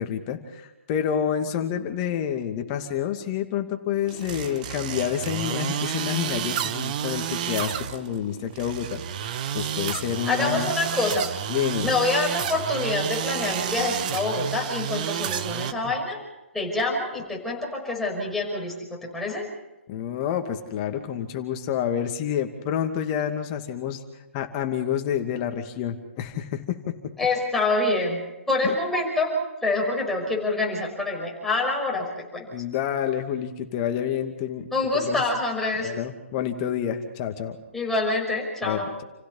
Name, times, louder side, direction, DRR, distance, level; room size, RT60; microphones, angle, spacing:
voice 1, 0.0-10.7 11.5-11.9 15.8-15.9 19.9-24.0 24.3-27.0 28.6-28.7 32.5-34.7 34.9-35.2 35.8-37.6 38.6-39.0, left 9 dB, 30° left, 5 dB, 2.4 m, -28 dB
sound 1, 4.1-15.7, right 9 dB, 35° right, 1.3 m, -30 dB
voice 2, 10.2-11.3 11.8-16.2 16.5-19.4 27.2-28.2 28.5-29.4 29.6-32.5 34.7-35.9 37.7-38.9, left 2 dB, 5° left, -2 dB, 5.7 m, -26 dB
29.5 x 16.5 x 5.6 m, 0.98 s
figure-of-eight pair, 145°, 7 cm